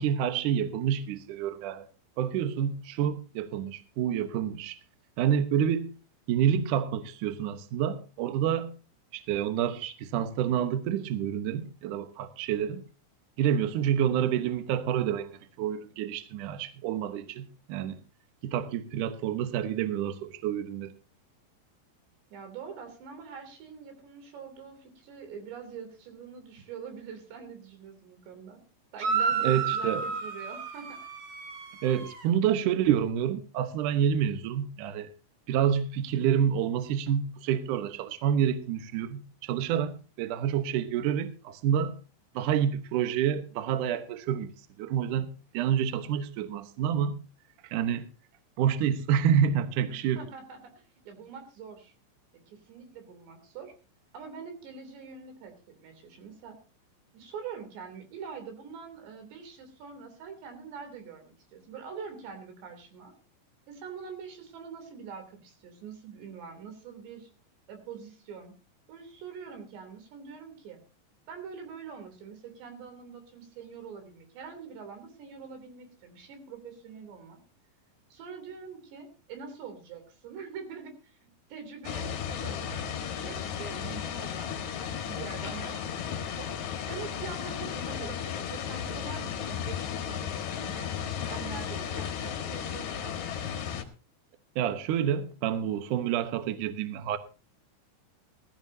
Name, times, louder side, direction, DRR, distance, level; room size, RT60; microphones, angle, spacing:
voice 1, 0.0-1.8 2.2-4.8 5.2-5.9 6.3-8.7 9.1-12.8 13.4-18.0 18.4-20.9 29.4-30.0 31.8-35.1 35.5-41.9 42.3-44.5 44.8-47.2 47.6-48.1 48.6-50.2 94.5-97.2, right 9 dB, 85° right, 1.8 m, -28 dB
voice 2, 22.3-28.6 28.9-31.0 49.9-51.9 52.5-53.7 54.1-56.6 57.1-63.1 63.7-67.3 67.7-68.5 68.9-70.8 71.3-77.4 78.1-86.5 86.9-90.9 91.3-93.3, right 6 dB, 70° right, 5.2 m, -44 dB
sound 1, 29.0-32.2, right 6 dB, 45° right, 3.0 m, -31 dB
sound 2, 81.8-93.8, left 8 dB, 60° left, 2.1 m, -34 dB
18.0 x 14.5 x 2.7 m
omnidirectional pair, 5.4 m